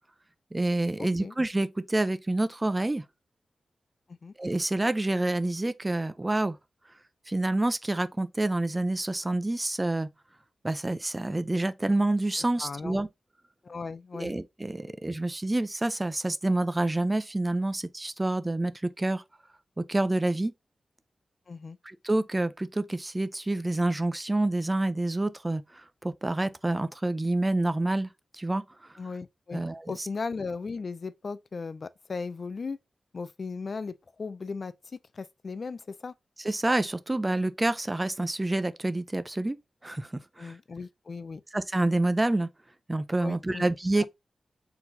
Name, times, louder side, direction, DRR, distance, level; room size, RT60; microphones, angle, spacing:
voice 1, 0.5-3.0 4.4-6.6 7.3-10.1 10.6-13.1 14.1-19.2 19.8-20.5 21.8-28.6 29.5-30.1 36.4-39.6 39.8-40.5 41.5-42.5 42.9-44.1, right 2 dB, 20° right, 0.5 m, -28 dB
voice 2, 12.6-13.0 13.6-14.3 21.5-21.8 29.0-32.8 33.1-34.7 35.1-36.1 40.4-41.4 43.2-43.7 44.0-44.1, left 4 dB, 50° left, 0.4 m, -37 dB
4.4 x 3.9 x 2.7 m
wide cardioid pair, 105°, 0 cm